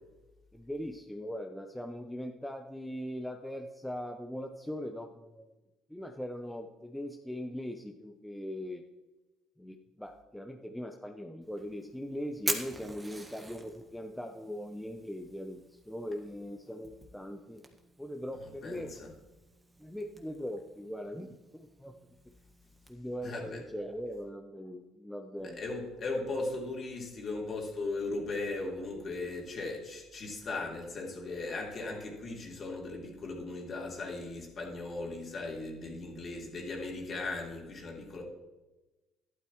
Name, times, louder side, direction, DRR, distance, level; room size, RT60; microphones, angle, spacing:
voice 1, 0.5-5.4 5.9-8.8 9.6-17.6 18.0-18.9 19.8-21.9 22.9-25.6, equal, 5° left, 3 dB, 0.8 m, -40 dB
Fire, 11.4-22.9, right 2 dB, 15° right, 1.5 m, -44 dB
voice 2, 18.4-19.1 23.2-23.6 25.4-38.2, left 3 dB, 40° left, -1 dB, 3.2 m, -38 dB
12.0 x 12.0 x 3.1 m, 1.1 s
cardioid pair, 125°, 0 cm